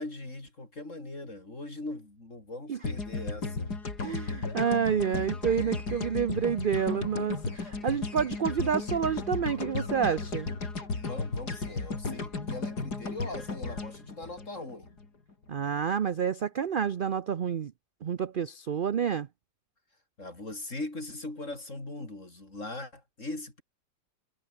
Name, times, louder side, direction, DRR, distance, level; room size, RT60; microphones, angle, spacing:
voice 1, 0.0-3.7 11.0-15.0 20.2-23.6, left 2 dB, 50° left, 5.9 m, -40 dB
sound 1, 2.8-15.1, left 3 dB, 80° left, 4.2 m, -34 dB
voice 2, 4.0-10.5 15.5-17.7 18.0-19.3, right 7 dB, 55° right, 0.6 m, -29 dB
omnidirectional pair, 1.7 m